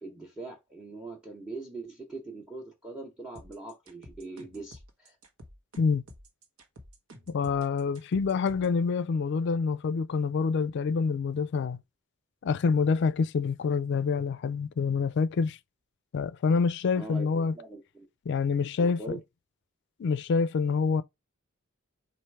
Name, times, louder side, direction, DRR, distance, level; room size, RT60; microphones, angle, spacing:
voice 1, 0.0-5.2 16.9-18.1 18.8-19.2, right 2 dB, 5° right, 0.8 m, -42 dB
sound 1, 3.4-8.8, equal, 80° right, 1.1 m, -51 dB
voice 2, 7.3-11.8 12.4-15.6 16.1-17.5 18.3-19.0 20.0-21.0, left 5 dB, 55° left, 0.4 m, -26 dB
4.4 x 2.5 x 4.6 m
head